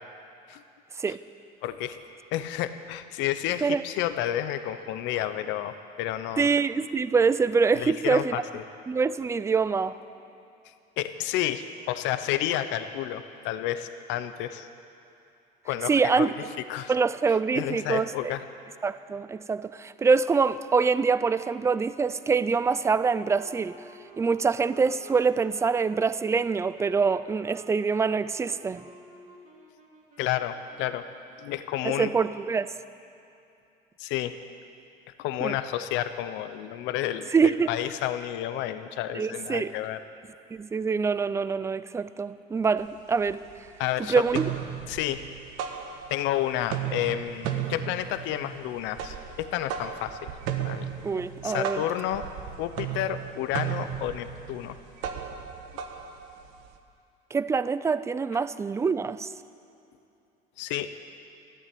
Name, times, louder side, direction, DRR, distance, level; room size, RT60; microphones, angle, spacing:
voice 1, 1.6-2.0 2.3-6.5 7.7-8.6 11.0-14.7 15.6-16.3 16.7-16.9 17.5-18.4 30.2-31.1 31.4-32.1 34.0-34.4 35.2-40.0 43.8-44.1 44.9-45.3 46.1-50.3 50.6-50.9 51.4-52.3 52.6-54.8 60.6-60.9, left 12 dB, 75° left, 11 dB, 0.8 m, -30 dB
voice 2, 6.4-8.4 8.9-9.9 15.9-16.3 16.9-18.3 18.8-23.8 24.2-28.8 31.8-32.7 35.4-35.6 37.3-37.7 39.1-39.7 40.5-43.4 44.1-44.5 51.0-51.8 57.3-59.3, right 5 dB, 15° right, 15 dB, 0.4 m, -25 dB
sound 1, 21.3-31.8, right 3 dB, 45° right, 2.7 m, -52 dB
sound 2, 42.8-42.9 43.2-43.9 44.2-46.4 46.6-56.8, right 9 dB, 90° right, 1.3 m, -35 dB
14.0 x 12.0 x 8.4 m, 2.7 s
cardioid pair, 135°, 19 cm